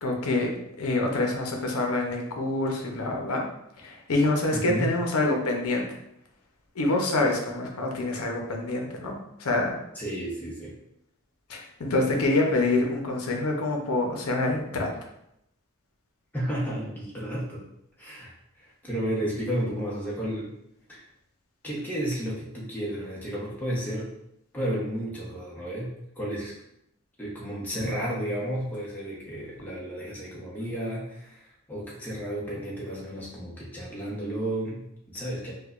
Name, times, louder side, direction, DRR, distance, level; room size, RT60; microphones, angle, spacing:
voice 1, 0.0-3.5 3.8-5.9 6.8-9.8 11.5-14.9, left 2 dB, 75° left, 1 dB, 0.7 m, -26 dB
voice 2, 4.5-5.0 9.9-10.7 16.3-17.6 18.0-20.5 20.9-21.0 21.6-24.1 24.5-26.6 27.2-35.5, equal, 10° left, -6 dB, 0.8 m, -32 dB
4.7 x 2.2 x 2.4 m, 0.79 s
head